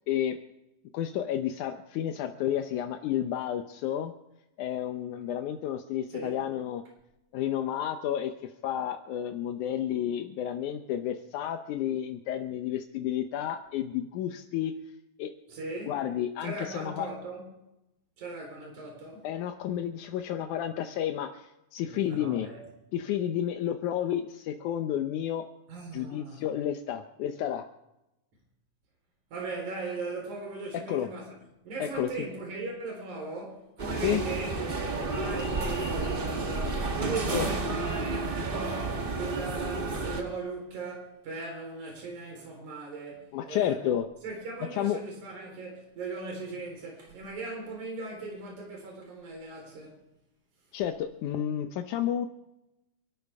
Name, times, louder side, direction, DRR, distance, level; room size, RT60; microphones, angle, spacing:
voice 1, 0.1-0.4 0.9-4.1 4.6-6.8 7.3-8.3 8.6-14.7 15.2-15.3 15.9-17.1 19.2-21.5 21.7-22.5 22.9-25.4 25.9-27.6 30.9-31.1 31.8-32.3 34.0-34.2 37.3-37.5 43.3-44.1 44.7-45.0 50.7-52.3, left 10 dB, 80° left, 2.3 m, -31 dB
voice 2, 15.5-16.0 16.4-17.5 18.2-19.3 21.9-22.6 25.7-26.5 29.3-31.4 31.6-43.8 44.2-50.0, right 3 dB, 75° right, 5.4 m, -38 dB
sound 1, 33.8-40.2, right 3 dB, 55° right, 0.6 m, -31 dB
29.0 x 12.5 x 3.5 m
omnidirectional pair, 3.5 m